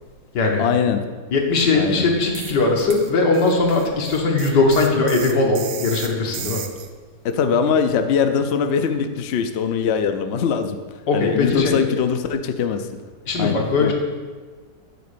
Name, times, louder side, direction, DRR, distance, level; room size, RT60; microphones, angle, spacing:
voice 1, 0.6-1.0 1.7-2.1 7.2-10.8 11.1-12.9 13.4-13.9, left 6 dB, 65° left, 7 dB, 0.6 m, -21 dB
voice 2, 1.3-6.6 11.1-11.8 13.3-13.9, left 3 dB, 85° left, 0 dB, 2.0 m, -19 dB
sound 1, 2.3-2.6 2.9-6.9, right 9 dB, 70° right, 1.1 m, -35 dB
9.4 x 4.2 x 6.7 m, 1.4 s
omnidirectional pair, 1.8 m